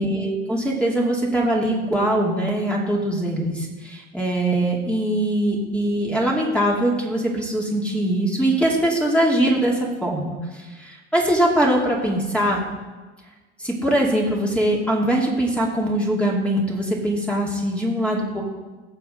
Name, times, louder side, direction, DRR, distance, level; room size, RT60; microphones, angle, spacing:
voice 1, 0.0-12.6 13.6-18.4, right 1 dB, 5° left, -3 dB, 2.7 m, -22 dB
18.0 x 6.9 x 3.8 m, 1.2 s
hypercardioid pair, 70°, 35 cm